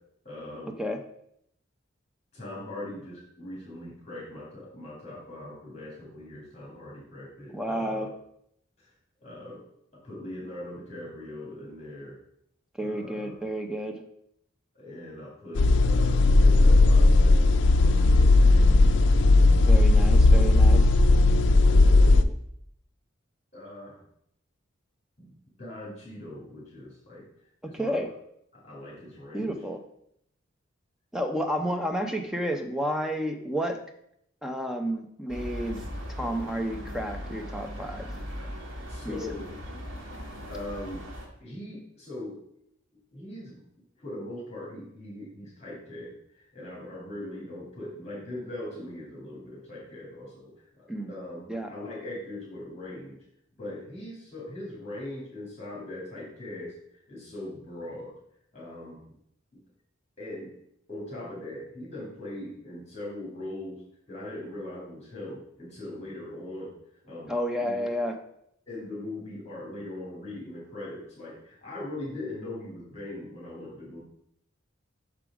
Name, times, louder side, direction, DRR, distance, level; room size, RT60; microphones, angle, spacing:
voice 1, 0.2-0.8 2.3-8.1 8.8-8.9 9.2-9.6 10.0-12.2 12.8-13.4 14.7-17.5 17.7-18.8 20.0-20.2 21.5-22.3 23.5-24.0 25.2-25.3 25.6-27.2 27.6-28.1 28.5-29.5 38.9-39.5 40.5-41.0 41.4-42.4 43.1-43.6 44.0-53.2 53.6-58.1 58.5-59.0 59.5-59.6 60.2-60.5 60.9-63.8 64.1-66.7 67.0-67.3 67.6-68.0 68.7-74.0, left 1 dB, 30° left, -5 dB, 2.4 m, -40 dB
voice 2, 7.5-8.1 12.8-14.0 19.7-20.9 27.6-28.1 29.3-29.8 31.1-33.8 34.4-38.1 39.0-39.2 50.9-51.1 51.5-51.7 67.3-68.2, equal, 5° right, 4 dB, 0.5 m, -31 dB
sound 1, 15.6-22.2, left 2 dB, 60° left, 0.4 m, -17 dB
sound 2, 35.3-41.3, equal, 80° right, 1.4 m, -38 dB
6.0 x 5.0 x 4.8 m, 0.73 s
head